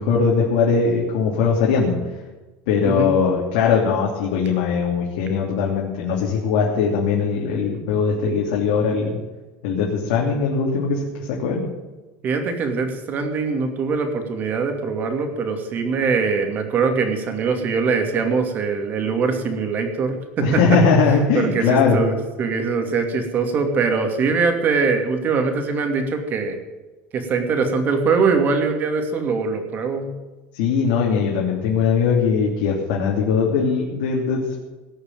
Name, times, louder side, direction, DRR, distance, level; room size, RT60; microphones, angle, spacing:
voice 1, 0.0-2.0 2.7-9.2 9.6-11.6 20.4-22.0 30.5-34.6, left 5 dB, 80° left, -3 dB, 3.1 m, -20 dB
voice 2, 12.2-20.8 21.3-22.1 22.4-26.6 27.1-30.1, right 4 dB, 35° right, 5 dB, 2.6 m, -22 dB
18.5 x 6.6 x 9.1 m, 1.2 s
cardioid pair, 150°, 5 cm